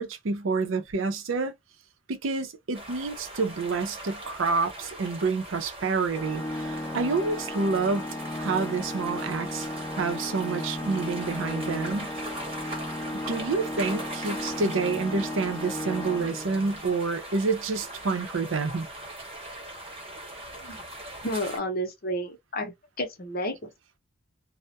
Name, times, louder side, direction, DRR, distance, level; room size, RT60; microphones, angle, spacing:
voice 1, 0.0-1.5 2.1-8.1 8.3-9.7 9.9-12.1 13.1-18.9, right 4 dB, 70° right, 0.5 m, -28 dB
sound 1, 2.7-21.6, right 1 dB, 30° right, 0.9 m, -40 dB
Organ, 6.1-16.9, left 1 dB, 15° left, 0.4 m, -35 dB
voice 2, 21.2-23.7, equal, 45° left, 0.7 m, -31 dB
2.2 x 2.0 x 2.7 m
head